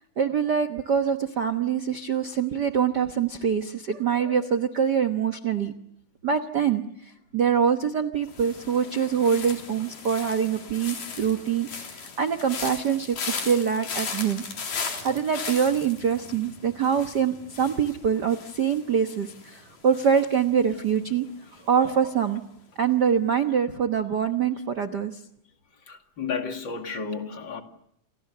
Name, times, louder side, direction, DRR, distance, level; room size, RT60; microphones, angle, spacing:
voice 1, 0.2-5.7 6.2-6.8 7.3-13.2 13.4-14.4 14.8-21.3 21.7-22.4 22.8-25.2, right 7 dB, 80° right, 0.9 m, -24 dB
sound 1, 8.3-21.3 21.6-22.0, left 5 dB, 80° left, 5.4 m, -37 dB
voice 2, 25.9-27.6, left 5 dB, 40° left, 2.6 m, -32 dB
29.0 x 28.0 x 6.7 m
omnidirectional pair, 3.8 m